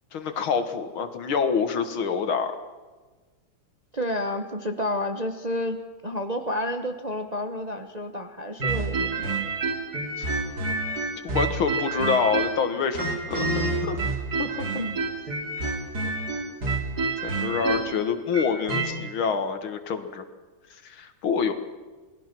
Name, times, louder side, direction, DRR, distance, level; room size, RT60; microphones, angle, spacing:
voice 1, 0.1-2.5 10.2-10.3 11.2-14.0 14.4-14.8 17.2-20.3 20.8-21.5, left 6 dB, 70° left, 8 dB, 2.3 m, -27 dB
voice 2, 3.9-9.4 14.7-15.0, left 1 dB, 25° right, 5 dB, 0.9 m, -30 dB
sound 1, 8.6-12.6 12.9-18.9, right 3 dB, 45° right, 3.7 m, -28 dB
28.0 x 20.0 x 6.1 m, 1.3 s
omnidirectional pair, 2.4 m